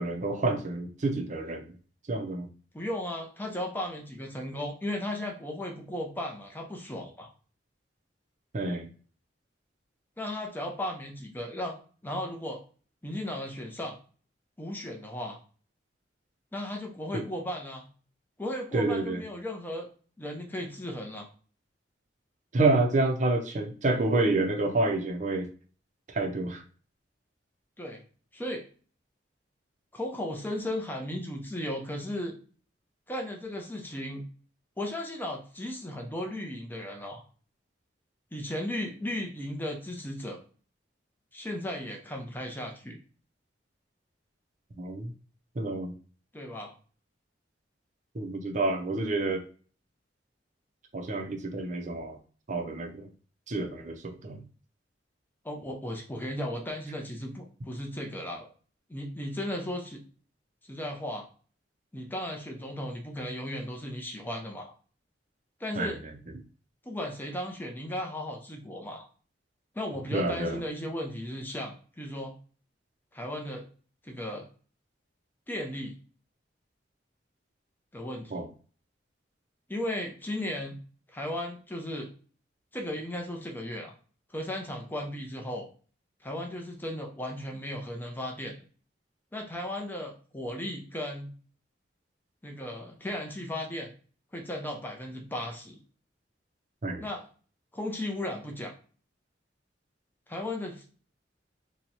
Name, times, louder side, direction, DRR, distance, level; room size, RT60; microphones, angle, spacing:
voice 1, 0.0-1.7 2.1-2.5 8.5-8.9 17.1-17.2 18.7-19.2 22.5-25.5 26.1-26.6 44.8-45.1 45.6-45.9 48.1-49.4 50.9-52.2 52.5-53.1 53.5-54.4 65.7-65.9 70.1-70.6 78.3-78.5 96.8-97.1, right 2 dB, 40° right, 4 dB, 0.6 m, -28 dB
voice 2, 2.7-7.3 10.2-11.8 12.0-12.6 13.0-14.0 14.6-15.4 16.5-17.9 18.4-19.9 20.2-21.3 27.8-28.0 28.3-28.6 29.9-32.4 33.1-34.2 34.8-37.2 38.3-40.4 41.3-43.0 46.3-46.7 55.4-58.5 58.9-60.0 60.7-61.3 61.9-64.7 65.6-66.0 66.8-69.1 69.7-72.3 73.1-73.7 74.0-74.5 75.5-76.0 77.9-78.5 79.7-80.8 81.1-82.1 82.7-83.9 84.3-85.7 86.2-88.6 89.3-91.3 92.4-93.9 94.3-95.8 97.0-97.3 97.7-98.7 100.3-100.8, left 1 dB, 10° left, 2 dB, 0.6 m, -35 dB
3.0 x 2.3 x 4.1 m, 0.40 s
head